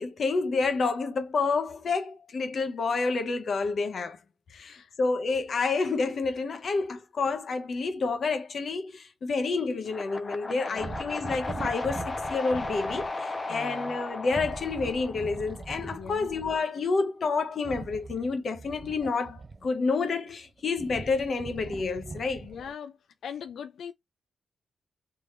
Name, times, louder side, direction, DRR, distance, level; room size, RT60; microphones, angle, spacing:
voice 1, 0.0-4.2 4.6-22.5, left 4 dB, 45° left, 0.9 m, -29 dB
voice 2, 4.5-4.9 10.4-11.0 13.5-13.9 16.0-16.3 22.4-22.9 23.2-23.9, left 7 dB, 80° left, 0.4 m, -41 dB
sound 1, 9.9-16.0, left 2 dB, 20° left, 0.6 m, -36 dB
sound 2, 10.8-13.1 14.2-16.6 17.6-19.9 20.5-22.8, right 4 dB, 30° right, 0.3 m, -41 dB
3.4 x 3.1 x 3.1 m
wide cardioid pair, 155°, 0 cm